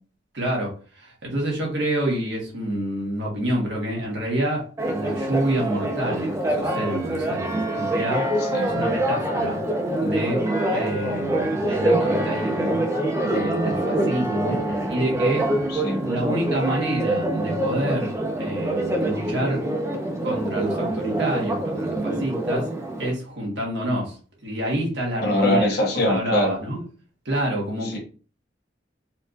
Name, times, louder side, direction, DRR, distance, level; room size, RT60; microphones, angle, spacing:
voice 1, 0.3-0.7 0.9-8.3 8.6-9.6 10.0-10.4 10.7-12.8 13.2-14.6 14.9-15.4 16.0-19.6 20.2-22.7 23.0-24.1 24.4-25.7 26.1-26.8 27.2-28.0, right 1 dB, 70° right, -2 dB, 1.5 m, -27 dB
Church bell, 4.8-23.1, right 1 dB, 15° right, 0.6 m, -25 dB
voice 2, 14.5-14.9 15.7-16.0 25.2-26.5 27.8-28.0, left 1 dB, 60° left, 0 dB, 1.3 m, -23 dB
4.3 x 2.7 x 2.5 m, 0.37 s
head